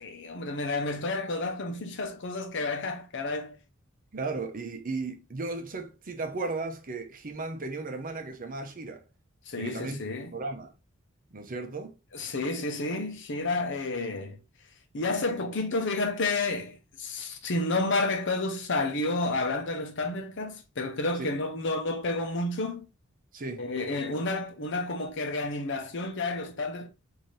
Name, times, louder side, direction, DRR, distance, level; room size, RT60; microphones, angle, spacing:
voice 1, 0.0-3.6 9.5-10.3 12.1-14.4 14.9-22.9 23.6-26.9, left 2 dB, 60° left, 0.8 m, -30 dB
voice 2, 4.1-9.0 9.5-10.0 10.3-10.7 11.3-11.9 21.2-21.3 23.3-23.7, right 3 dB, 40° right, 0.7 m, -35 dB
4.1 x 2.8 x 3.1 m
head